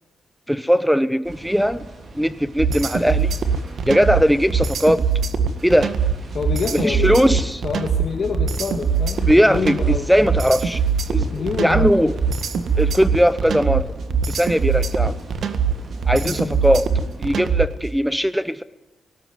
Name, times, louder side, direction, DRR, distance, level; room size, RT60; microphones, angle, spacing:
voice 1, 0.5-1.8 2.1-3.3 3.9-5.1 5.6-5.9 6.8-7.6 9.3-10.8 11.1-12.2 12.8-13.9 14.3-15.2 16.1-16.9 17.2-18.6, equal, ahead, 15 dB, 1.0 m, -19 dB
sound 1, 1.2-17.6, right 2 dB, 40° right, 4.7 m, -40 dB
sound 2, 2.6-17.8, right 6 dB, 65° right, 1.8 m, -22 dB
voice 2, 6.3-10.4 11.3-12.1 16.2-16.6, left 5 dB, 50° left, 2 dB, 2.0 m, -27 dB
19.5 x 18.5 x 9.7 m, 0.93 s
wide cardioid pair, 145°, 0 cm